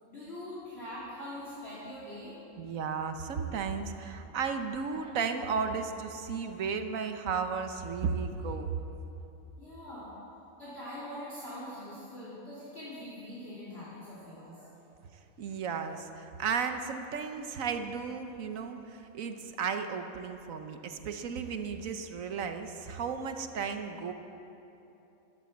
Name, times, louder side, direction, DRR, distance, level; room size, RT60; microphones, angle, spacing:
voice 1, 0.1-2.3 9.6-10.1 10.6-14.6, left 1 dB, 45° left, -9 dB, 3.2 m, -43 dB
voice 2, 2.6-8.7 15.4-24.1, right 5 dB, 70° right, 7 dB, 1.3 m, -34 dB
13.5 x 11.5 x 7.2 m, 3.0 s
omnidirectional pair, 1.5 m